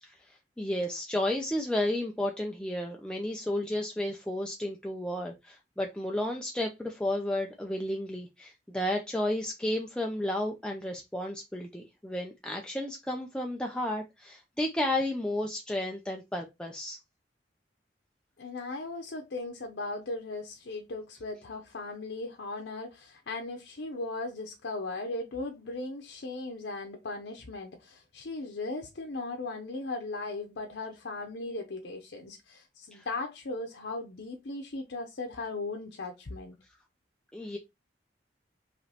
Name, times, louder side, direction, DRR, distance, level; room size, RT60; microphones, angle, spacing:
voice 1, 0.0-17.0 32.9-33.1 37.3-37.6, left 1 dB, 5° left, 0.5 m, -32 dB
voice 2, 18.4-36.6, left 2 dB, 85° left, 0.7 m, -37 dB
5.0 x 3.0 x 2.8 m
head